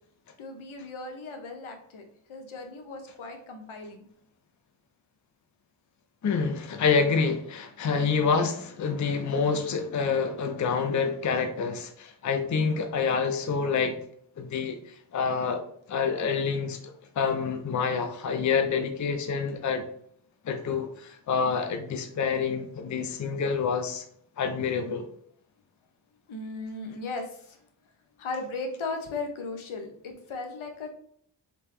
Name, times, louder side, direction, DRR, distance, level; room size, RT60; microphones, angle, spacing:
voice 1, 0.4-4.0 26.3-27.6 28.2-30.9, left 3 dB, 70° left, 5 dB, 0.9 m, -37 dB
voice 2, 6.2-14.0 14.4-15.6 15.9-19.9 20.4-24.0 24.4-25.1, left 5 dB, 35° left, 6 dB, 0.5 m, -27 dB
3.3 x 2.9 x 3.2 m, 0.64 s
cardioid pair, 40°, 50 cm